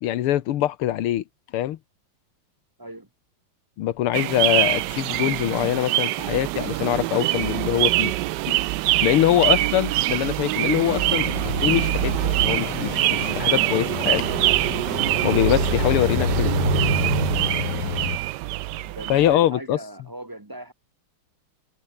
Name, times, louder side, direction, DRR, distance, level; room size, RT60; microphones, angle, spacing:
voice 1, 0.0-1.2 1.5-1.8 3.8-8.1 8.5-8.6 9.0-14.3 14.9-16.5 19.1-19.8, left 12 dB, 85° left, 1.9 m, -23 dB
voice 2, 2.8-3.1 18.9-20.7, right 1 dB, 15° right, 0.8 m, -38 dB
sound 1, 4.1-19.3, right 17 dB, 80° right, 0.9 m, -24 dB
sound 2, 10.9-18.2, left 11 dB, 65° left, 1.7 m, -29 dB
omnidirectional pair, 2.4 m